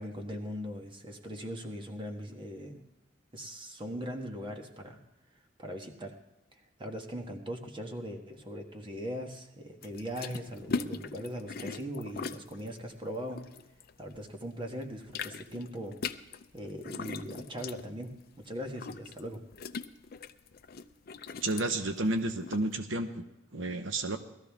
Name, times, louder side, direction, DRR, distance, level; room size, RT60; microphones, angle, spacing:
voice 1, 0.0-2.8 3.3-5.0 5.6-6.1 6.8-13.4 14.0-16.0 16.5-18.1 18.4-19.4, equal, 25° right, 3 dB, 1.4 m, -40 dB
sound 1, 9.8-14.4 14.7-22.7, left 5 dB, 55° left, 0.5 m, -40 dB
voice 2, 21.4-23.2 23.5-24.2, right 2 dB, 85° right, 8 dB, 0.9 m, -31 dB
18.5 x 13.5 x 3.6 m, 0.89 s
head